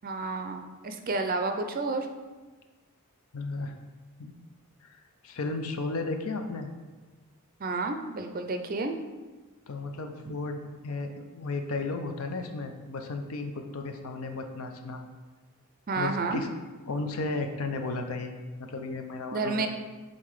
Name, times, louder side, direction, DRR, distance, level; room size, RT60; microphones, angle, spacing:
voice 1, 0.0-2.1 7.6-9.0 10.2-10.3 15.9-16.4 19.3-19.7, right 3 dB, 40° right, 6 dB, 0.4 m, -30 dB
voice 2, 3.3-3.7 4.2-4.3 4.8-6.7 9.7-15.0 16.0-16.5 16.9-19.7, left 3 dB, 75° left, 5 dB, 0.6 m, -34 dB
5.7 x 3.8 x 4.7 m, 1.3 s
head